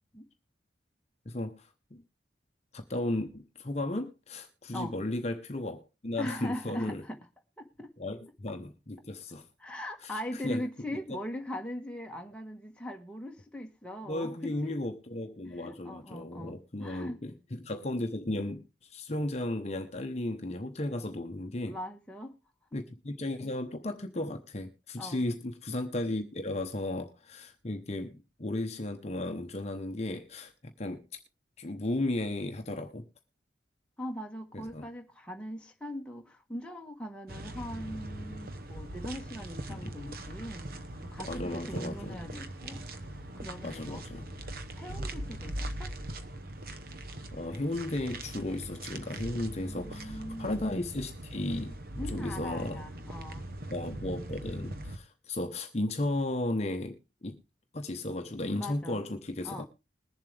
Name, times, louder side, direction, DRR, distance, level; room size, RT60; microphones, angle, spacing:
voice 1, 1.3-2.0 2.7-7.0 8.0-9.4 10.0-10.6 14.1-21.8 22.7-31.2 31.6-33.1 34.5-34.9 39.7-39.9 41.2-42.2 43.6-44.2 47.3-51.8 52.1-52.8 53.7-57.0 57.2-57.4 57.7-59.6, left 1 dB, 35° left, 0.9 m, -35 dB
voice 2, 6.2-7.2 7.6-7.9 9.6-14.7 15.5-17.2 21.7-22.3 25.0-25.2 34.0-44.0 44.7-45.9 49.4-50.6 52.0-53.5 58.6-59.0 59.4-59.6, left 1 dB, 5° left, 1.3 m, -40 dB
sound 1, 37.3-55.0, right 1 dB, 55° right, 0.9 m, -41 dB
21.0 x 7.4 x 3.3 m
head